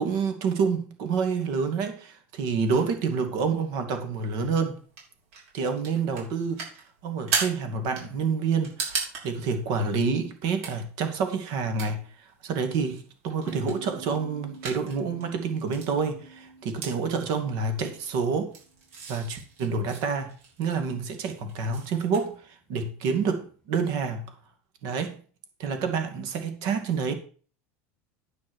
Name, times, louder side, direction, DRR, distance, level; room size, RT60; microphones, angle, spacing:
voice 1, 0.0-4.8 5.5-6.7 7.0-18.5 19.1-20.3 20.6-22.4 22.7-24.3 24.8-25.2 25.6-27.1, right 5 dB, 45° right, 2.3 m, -28 dB
sound 1, 4.1-22.3, right 5 dB, 75° right, 5.8 m, -38 dB
sound 2, 13.5-18.8, right 3 dB, 10° left, 1.7 m, -47 dB
9.9 x 6.2 x 6.4 m
supercardioid pair, 170°, 7 cm